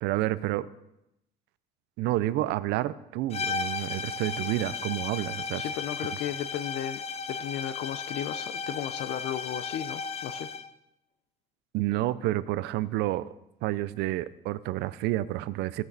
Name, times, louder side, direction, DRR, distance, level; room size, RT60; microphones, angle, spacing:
voice 1, 0.0-0.7 2.0-5.6 11.7-13.3 13.6-15.8, right 16 dB, 90° right, 16 dB, 0.5 m, -29 dB
sound 1, 3.3-10.7, left 5 dB, 35° left, 0.5 m, -35 dB
voice 2, 5.6-7.0 7.3-10.5, left 11 dB, 80° left, 10 dB, 0.6 m, -35 dB
16.5 x 6.2 x 4.0 m, 0.86 s
cardioid pair, 110°, 17 cm